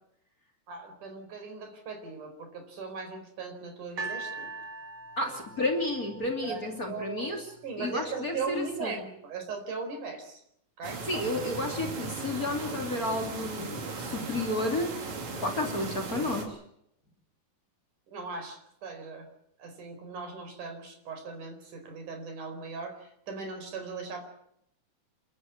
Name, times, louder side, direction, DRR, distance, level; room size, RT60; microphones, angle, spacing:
voice 1, 0.7-4.5 5.3-5.4 6.4-7.3 7.6-10.4 10.8-11.3 18.1-19.3 19.6-24.2, right 4 dB, 65° right, 6 dB, 5.8 m, -39 dB
sound 1, 4.0-7.2 7.9-8.0, right 3 dB, 40° right, 2.8 m, -41 dB
voice 2, 5.2-7.4 7.8-9.1 11.1-14.9 15.4-16.6, left 2 dB, 25° left, 5 dB, 3.1 m, -31 dB
sound 2, 10.8-16.5, right 4 dB, 85° right, 5.2 m, -37 dB
29.0 x 13.0 x 9.5 m, 0.75 s
omnidirectional pair, 3.8 m